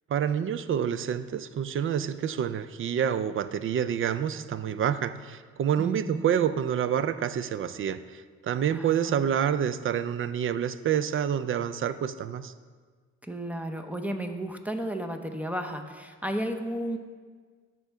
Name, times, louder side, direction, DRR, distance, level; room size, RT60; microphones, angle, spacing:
voice 1, 0.1-12.5, right 8 dB, 45° right, 13 dB, 0.4 m, -28 dB
voice 2, 5.8-6.2 8.7-9.3 13.2-17.0, right 1 dB, 5° right, 5 dB, 0.7 m, -33 dB
13.0 x 4.5 x 3.5 m, 1.5 s
cardioid pair, 90°, 30 cm